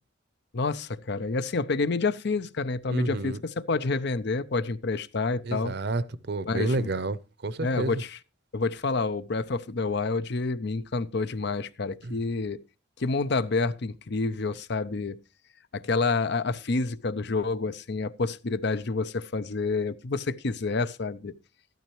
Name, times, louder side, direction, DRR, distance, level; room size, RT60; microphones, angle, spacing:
voice 1, 0.5-5.7 6.4-6.9 7.6-8.2 8.5-12.6 13.0-15.2 15.7-21.3, left 3 dB, 60° left, 0.6 m, -28 dB
voice 2, 2.9-3.4 5.4-8.0 12.0-12.2, right 2 dB, 60° right, 0.7 m, -30 dB
13.5 x 12.0 x 3.1 m
head